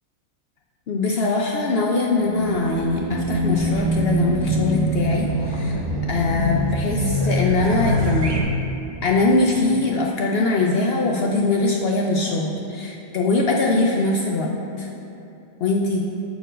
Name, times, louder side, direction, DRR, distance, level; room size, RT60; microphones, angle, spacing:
voice 1, 0.9-5.8 6.1-8.4 9.0-14.5 14.8-14.9 15.6-16.0, left 3 dB, 65° left, -1 dB, 0.6 m, -22 dB
Race car auto racing / Alarm, 2.2-8.4, right 1 dB, 30° right, 0.4 m, -24 dB
6.8 x 4.5 x 4.9 m, 2.9 s
omnidirectional pair, 1.4 m